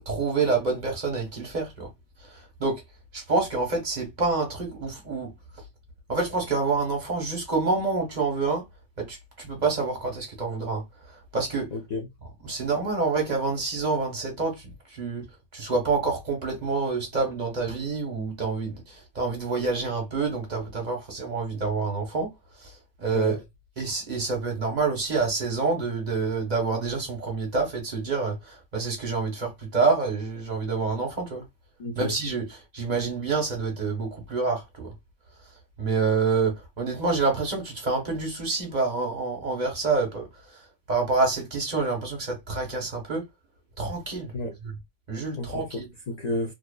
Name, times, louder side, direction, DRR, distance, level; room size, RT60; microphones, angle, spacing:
voice 1, 0.1-1.9 2.2-2.8 3.1-5.3 6.1-8.6 9.0-11.7 12.4-15.2 15.5-22.3 22.6-23.4 23.8-31.4 32.0-32.4 32.7-34.9 35.8-40.6 40.9-43.2 43.8-44.3 44.6-44.7 45.1-45.9, right 4 dB, 40° right, 0.9 m, -27 dB
voice 2, 11.7-12.1 23.1-23.4 31.8-32.2 44.3-44.6 45.4-46.5, left 2 dB, 65° left, 0.4 m, -31 dB
2.6 x 2.3 x 2.2 m
omnidirectional pair, 1.2 m